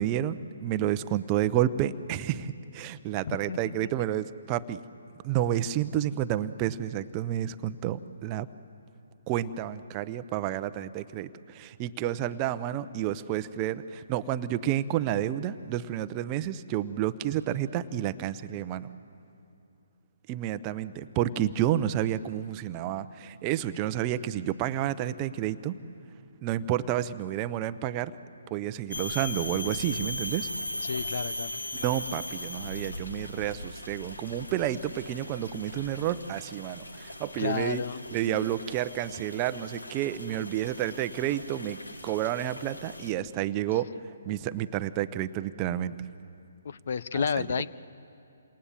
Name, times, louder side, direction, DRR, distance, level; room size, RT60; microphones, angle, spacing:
voice 1, 0.0-4.8 5.2-8.5 9.3-18.9 20.3-25.7 26.4-28.1 28.5-30.5 31.7-37.8 38.1-41.8 42.0-45.9 47.4-47.5, right 12 dB, 25° right, 12 dB, 0.8 m, -30 dB
voice 2, 3.2-3.9 30.8-31.6 37.4-38.0 46.6-47.7, left 6 dB, 50° left, 17 dB, 0.7 m, -31 dB
sound 1, 28.9-43.1, left 1 dB, 80° left, 2.2 m, -39 dB
28.5 x 27.0 x 7.5 m, 2.6 s
figure-of-eight pair, 135°, 0 cm